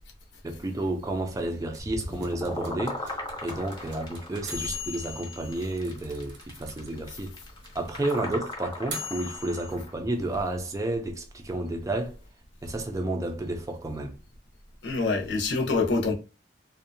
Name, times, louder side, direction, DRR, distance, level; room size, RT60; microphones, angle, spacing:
voice 1, 0.4-7.3 7.7-12.1 12.6-14.1, right 2 dB, 20° right, 0.4 m, -31 dB
sound 1, 1.7-6.9 7.1-7.2 7.4-9.7, left 3 dB, 85° right, 0.8 m, -38 dB
sound 2, 1.8-9.9, left 1 dB, 25° left, 0.7 m, -38 dB
voice 2, 14.8-16.1, left 3 dB, 80° left, 0.7 m, -25 dB
2.6 x 2.1 x 2.6 m
head